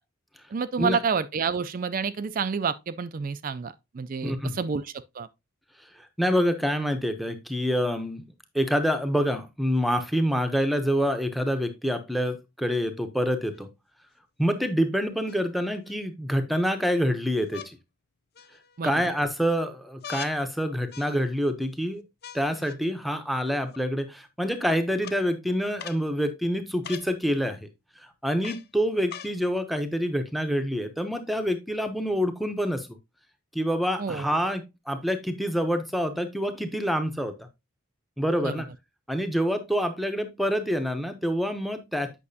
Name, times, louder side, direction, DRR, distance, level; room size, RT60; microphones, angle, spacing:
voice 1, 0.5-5.3 18.8-18.9 34.0-34.3 38.4-38.5, right 5 dB, 40° right, 0.4 m, -29 dB
voice 2, 4.2-4.7 5.9-8.2 8.5-13.7 14.4-17.8 18.8-22.0 22.3-27.7 28.0-32.9 33.5-37.3 38.2-38.7 39.1-42.1, equal, ahead, 0.7 m, -27 dB
sound 1, 13.5-13.6 15.3-16.0 17.5-17.7 18.4-18.9 20.0-20.4 20.9-21.5 22.2-22.8 23.7-23.8 25.0-25.2 25.8-26.0 26.8-27.1 28.4-28.7 29.1-29.4 30.2-30.3, left 8 dB, 45° left, 0.5 m, -41 dB
8.5 x 5.9 x 2.7 m
head